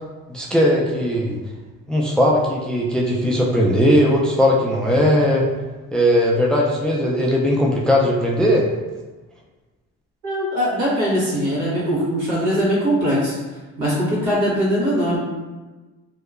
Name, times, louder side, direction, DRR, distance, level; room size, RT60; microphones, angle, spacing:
voice 1, 0.3-1.4 1.9-5.5 5.9-8.7, equal, 5° left, -2 dB, 0.3 m, -18 dB
voice 2, 10.2-13.4 13.8-15.2, equal, 75° right, -6 dB, 1.3 m, -21 dB
2.8 x 2.1 x 2.4 m, 1.2 s
supercardioid pair, 80°, 30 cm